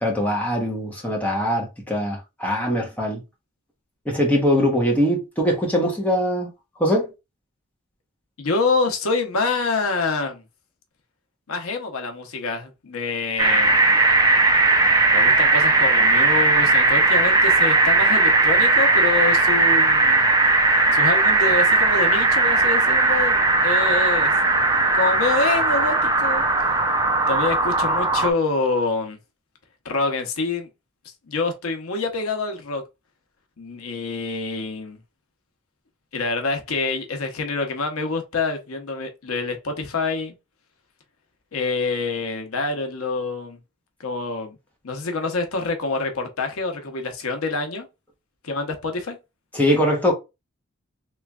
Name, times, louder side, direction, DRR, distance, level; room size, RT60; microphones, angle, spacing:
voice 1, 0.0-3.2 4.1-6.5 6.8-7.1 49.5-50.1, equal, 5° left, 0.9 m, -22 dB
voice 2, 8.4-10.4 11.5-13.8 15.1-20.2 20.9-24.3 24.9-26.4 27.3-29.2 29.8-30.7 31.3-32.8 33.6-35.0 36.1-40.3 41.5-43.6 44.0-44.6 44.8-47.9 48.4-49.2, left 3 dB, 85° left, 0.8 m, -26 dB
sound 1, 13.4-28.3, right 3 dB, 15° right, 0.4 m, -18 dB
3.3 x 3.0 x 2.3 m
head